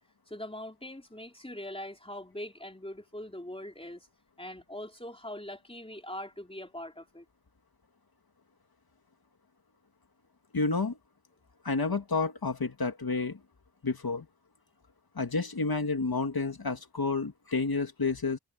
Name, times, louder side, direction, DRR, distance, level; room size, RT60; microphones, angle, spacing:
voice 1, 0.3-4.1 4.4-7.2, left 1 dB, 15° left, 3.2 m, -42 dB
voice 2, 10.5-11.0 11.6-13.4 13.8-14.3 15.2-18.4, left 4 dB, 60° left, 2.2 m, -30 dB
wide cardioid pair, 50°, 42 cm